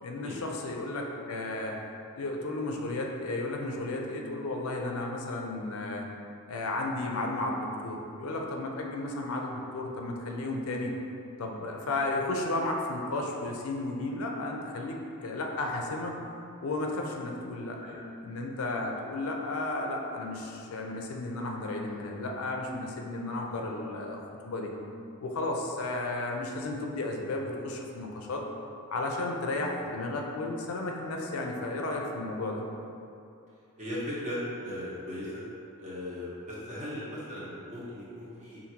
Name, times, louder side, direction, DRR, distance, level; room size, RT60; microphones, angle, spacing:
voice 1, 0.0-1.8 2.2-6.1 6.5-10.9 11.4-16.1 16.6-17.8 18.2-24.7 25.2-28.5 28.9-32.6, left 2 dB, 70° left, 1 dB, 0.4 m, -33 dB
voice 2, 33.8-35.4 35.8-38.6, left 1 dB, 35° right, -8 dB, 1.0 m, -37 dB
5.1 x 2.6 x 2.8 m, 2.6 s
head